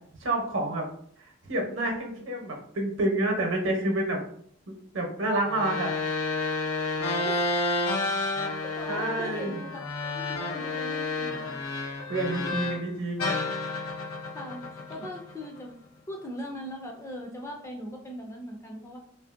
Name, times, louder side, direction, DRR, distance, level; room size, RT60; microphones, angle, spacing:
voice 1, 0.2-0.9 1.4-4.2 4.9-5.9 8.9-9.6 12.1-13.4 15.0-15.1, right 1 dB, 60° right, 2 dB, 0.8 m, -28 dB
sound 1, 5.5-12.9 13.2-15.6, left 3 dB, 85° left, 0.5 m, -30 dB
voice 2, 7.0-7.5 8.6-11.5 14.3-15.7 16.1-19.0, equal, 15° left, 1 dB, 0.3 m, -40 dB
2.9 x 2.5 x 2.4 m, 0.63 s
head